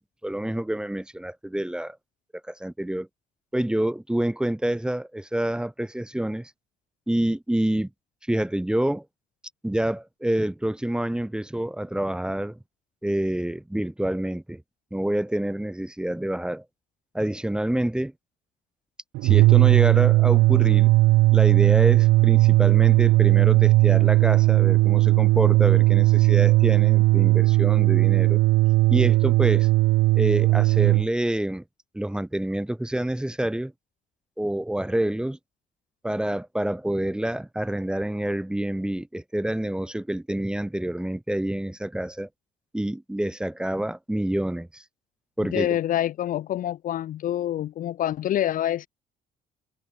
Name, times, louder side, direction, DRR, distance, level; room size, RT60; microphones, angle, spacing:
voice 1, 0.2-2.0 2.5-3.1 3.5-6.5 7.1-7.9 8.3-9.0 9.6-12.6 13.0-14.6 14.9-16.6 17.1-18.1 19.2-20.9 21.3-28.4 28.9-29.7 30.1-31.6 31.9-33.7 34.4-35.4 36.0-42.3 42.7-44.8 45.4-45.8, right 1 dB, 5° right, 1.2 m, -27 dB
sound 1, 19.1-31.1, right 20 dB, 85° right, 0.5 m, -18 dB
voice 2, 45.4-48.9, left 12 dB, 55° left, 0.6 m, -26 dB
cardioid pair, 110°, 17 cm